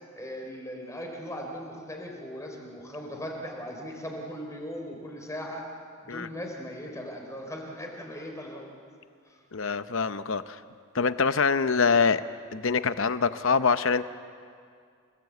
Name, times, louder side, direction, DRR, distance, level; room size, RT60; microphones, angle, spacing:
voice 1, 0.1-5.6 6.0-8.7 9.3-9.4, equal, 15° left, 1 dB, 3.4 m, -38 dB
voice 2, 9.5-10.6 10.9-12.2 12.5-14.0, left 5 dB, 60° left, 12 dB, 0.8 m, -24 dB
29.0 x 18.0 x 8.4 m, 2.2 s
head